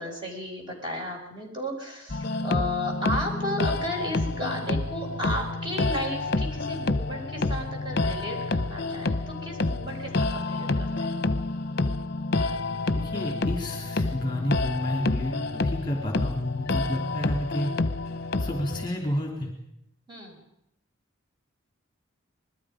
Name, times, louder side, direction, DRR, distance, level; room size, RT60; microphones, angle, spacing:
voice 1, 0.0-11.1 20.1-20.4, equal, 25° right, 1 dB, 5.0 m, -34 dB
sound 1, 2.1-18.9, left 2 dB, 50° left, 0.8 m, -28 dB
voice 2, 12.9-17.7 18.4-19.5, left 1 dB, 20° left, 0 dB, 3.1 m, -30 dB
26.5 x 21.0 x 5.1 m, 0.82 s
head